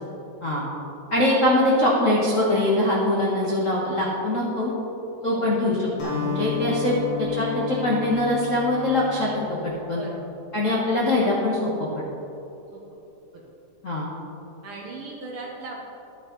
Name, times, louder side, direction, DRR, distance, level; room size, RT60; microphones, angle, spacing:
voice 1, 1.1-4.7 5.2-10.0 10.5-12.0 13.8-14.1, left 1 dB, 75° left, -5 dB, 0.7 m, -23 dB
voice 2, 5.2-6.0 9.9-10.2 10.7-10.8 12.7-12.8 13.3-13.5 14.6-15.8, right 2 dB, 60° right, -2 dB, 1.5 m, -39 dB
Acoustic guitar, 6.0-10.5, left 7 dB, 55° left, 2.1 m, -33 dB
12.5 x 7.3 x 3.9 m, 2.9 s
omnidirectional pair, 3.6 m